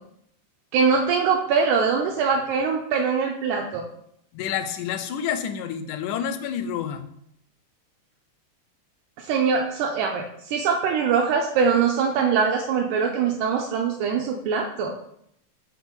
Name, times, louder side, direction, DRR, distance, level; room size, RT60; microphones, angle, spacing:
voice 1, 0.7-3.8 9.2-14.9, right 5 dB, 80° right, 1 dB, 2.0 m, -23 dB
voice 2, 4.3-7.0, left 8 dB, 85° left, 9 dB, 2.0 m, -29 dB
6.0 x 3.7 x 4.3 m, 0.72 s
omnidirectional pair, 3.5 m